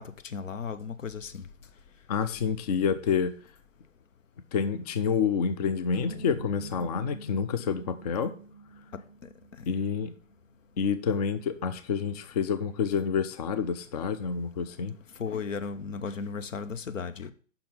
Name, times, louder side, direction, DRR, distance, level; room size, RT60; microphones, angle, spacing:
voice 1, 0.0-1.5 8.9-9.0 15.2-17.3, left 5 dB, 75° left, 0.8 m, -35 dB
voice 2, 2.1-3.3 4.5-8.3 9.7-10.1 10.8-14.9, left 6 dB, 35° left, 0.4 m, -28 dB
sound 1, 5.9-10.5, right 1 dB, 50° left, 2.1 m, -45 dB
5.7 x 4.3 x 5.4 m
hypercardioid pair, 130°, 39 cm